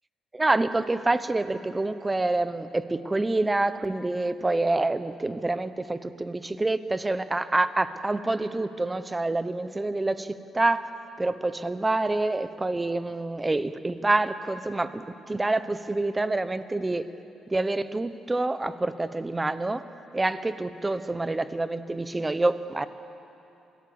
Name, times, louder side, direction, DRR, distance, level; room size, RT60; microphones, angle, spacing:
voice 1, 0.3-10.9 11.2-17.0 17.5-19.8 20.1-22.9, right 2 dB, 20° right, 12 dB, 1.0 m, -27 dB
28.5 x 18.0 x 7.1 m, 2.9 s
cardioid pair, 90°, 0 cm